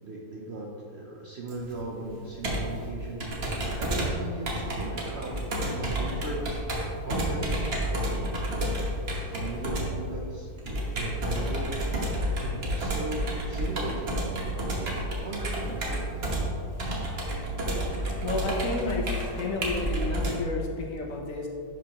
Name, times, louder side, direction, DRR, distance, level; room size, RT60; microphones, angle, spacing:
voice 1, 0.0-6.6 7.0-11.7 12.4-14.3 14.8-16.1, right 2 dB, 55° right, -2 dB, 0.7 m, -38 dB
Computer keyboard, 1.5-20.3, right 1 dB, 40° right, 1.3 m, -30 dB
voice 2, 18.2-21.5, left 3 dB, 60° left, 1 dB, 1.1 m, -31 dB
11.0 x 5.3 x 2.9 m, 2.5 s
omnidirectional pair, 1.8 m